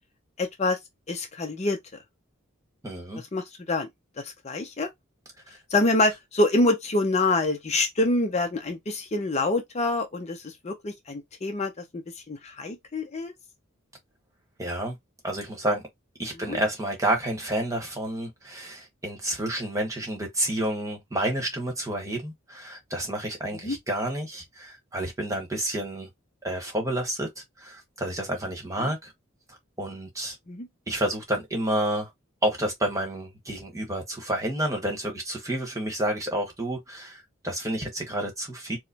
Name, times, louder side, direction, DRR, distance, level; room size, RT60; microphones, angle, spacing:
voice 1, 0.4-0.8 1.1-1.8 3.3-3.9 4.2-4.9 5.7-12.0 12.3-13.3 16.4-16.6 23.6-23.8 28.8-28.9 30.5-30.7, left 2 dB, 30° left, 0.6 m, -26 dB
voice 2, 2.8-3.2 14.6-15.0 15.2-15.8 16.2-26.1 26.4-29.1 29.5-30.4 30.9-32.1 32.4-38.8, right 1 dB, 15° right, 1.2 m, -30 dB
4.7 x 2.1 x 2.8 m
head